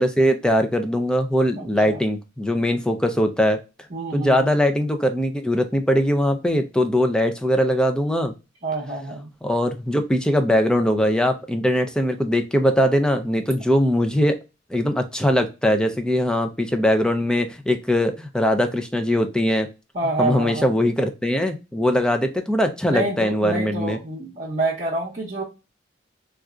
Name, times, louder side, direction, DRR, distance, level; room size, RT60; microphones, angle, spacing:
voice 1, 0.0-3.6 4.1-8.3 9.4-14.4 14.7-19.7 20.2-24.0, equal, 5° left, 6 dB, 0.4 m, -21 dB
voice 2, 1.6-2.0 3.9-4.6 8.6-9.3 19.9-20.7 22.9-25.4, right 2 dB, 35° right, -5 dB, 0.7 m, -27 dB
3.9 x 2.4 x 2.3 m, 0.28 s
head